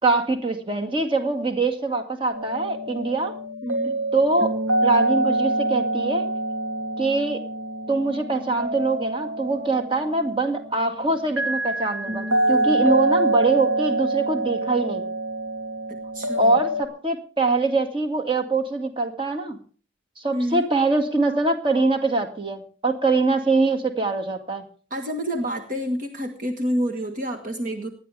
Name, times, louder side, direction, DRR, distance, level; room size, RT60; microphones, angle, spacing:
voice 1, 0.0-3.3 4.1-4.5 4.8-6.3 7.0-7.4 7.9-15.0 16.4-19.6 20.2-24.6, right 3 dB, 25° right, 4 dB, 2.1 m, -23 dB
sound 1, 2.3-16.9, right 2 dB, 85° right, 2.7 m, -26 dB
voice 2, 3.6-4.0 12.3-12.9 16.1-16.6 20.3-20.7 24.9-27.9, equal, 45° right, 3 dB, 1.5 m, -28 dB
19.5 x 12.0 x 3.4 m, 0.39 s
head